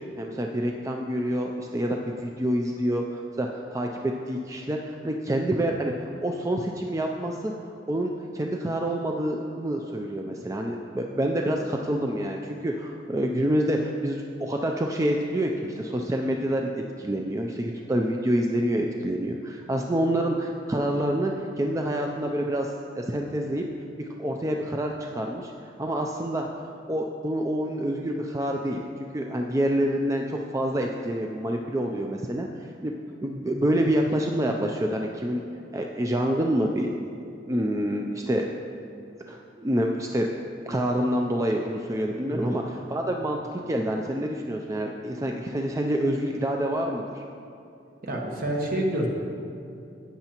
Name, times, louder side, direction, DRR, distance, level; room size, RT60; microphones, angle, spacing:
voice 1, 0.0-7.5 7.9-21.3 21.6-23.6 24.0-26.5 26.9-32.5 32.8-32.9 33.2-35.4 35.7-36.9 37.5-38.5 39.3-40.3 40.7-47.2, right 1 dB, 20° right, 2 dB, 0.4 m, -27 dB
voice 2, 48.0-49.1, right 1 dB, 55° right, 0 dB, 1.4 m, -27 dB
13.5 x 8.7 x 2.9 m, 2.6 s
head